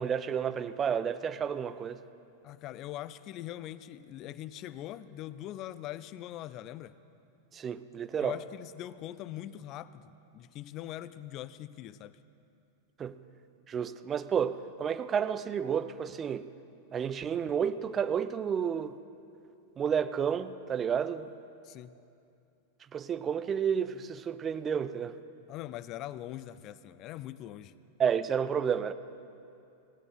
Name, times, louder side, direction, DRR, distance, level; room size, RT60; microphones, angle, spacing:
voice 1, 0.0-2.0 7.5-8.4 13.0-13.2 13.7-16.5 16.9-19.0 19.8-21.3 22.9-25.1 28.0-28.9, right 7 dB, 25° right, 12 dB, 0.4 m, -31 dB
voice 2, 2.4-6.9 8.2-12.2 21.6-21.9 25.5-27.7, left 13 dB, 35° left, 15 dB, 0.3 m, -42 dB
17.5 x 9.5 x 5.9 m, 2.6 s
figure-of-eight pair, 90°, 0 cm